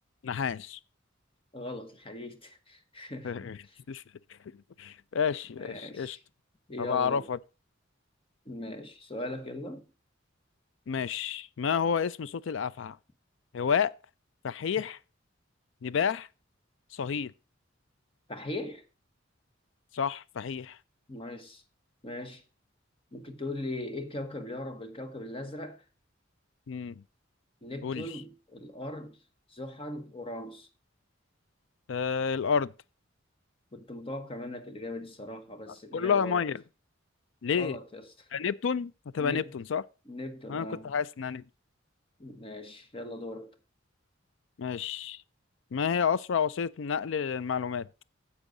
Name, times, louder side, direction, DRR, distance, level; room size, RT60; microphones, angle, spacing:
voice 1, 0.2-0.8 3.2-3.6 3.9-4.0 4.8-6.2 6.8-7.4 10.9-13.0 13.5-13.9 14.4-15.0 15.8-16.3 16.9-17.3 19.9-20.8 26.7-27.0 27.8-28.0 31.9-32.7 35.9-36.6 37.4-37.8 38.3-39.8 40.5-41.4 44.6-45.2 45.7-47.9, left 6 dB, 70° left, 0.4 m, -30 dB
voice 2, 1.5-3.8 5.6-6.2 6.7-7.3 8.5-9.9 18.3-18.8 21.1-21.6 22.0-22.4 23.1-25.8 27.6-29.2 29.5-30.7 33.7-36.4 37.5-38.3 39.2-39.5 40.1-40.9 42.2-43.6, left 1 dB, 30° left, 1.0 m, -39 dB
10.0 x 7.3 x 3.8 m
head